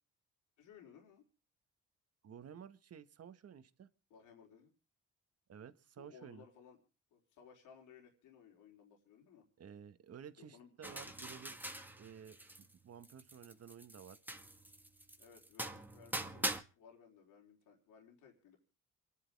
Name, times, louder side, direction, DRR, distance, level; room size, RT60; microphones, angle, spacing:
voice 1, 0.6-1.3 4.1-4.7 6.0-6.8 7.1-9.4 10.4-11.1 15.2-18.6, left 7 dB, 85° left, 0 dB, 4.4 m, -60 dB
voice 2, 2.2-3.9 5.5-6.4 9.6-11.6 11.9-14.2, right 8 dB, 55° right, 11 dB, 1.5 m, -53 dB
sound 1, 10.8-12.7 13.0-16.6, right 1 dB, 5° right, 1.7 m, -43 dB
27.5 x 11.0 x 3.5 m, 0.35 s
cardioid pair, 90°, 30 cm